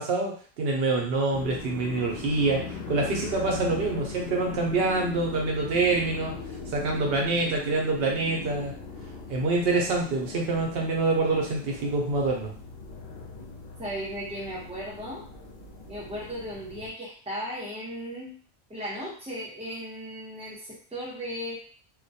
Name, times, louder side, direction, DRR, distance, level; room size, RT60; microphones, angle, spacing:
voice 1, 0.0-6.4 6.7-8.7 9.3-12.5, right 3 dB, 70° right, 0 dB, 0.8 m, -26 dB
sound 1, 1.3-16.9, left 3 dB, 70° left, 0.8 m, -39 dB
voice 2, 13.8-15.3 15.9-18.3 18.7-21.6, equal, 5° right, -5 dB, 0.6 m, -36 dB
2.2 x 2.1 x 2.6 m, 0.42 s
omnidirectional pair, 1.1 m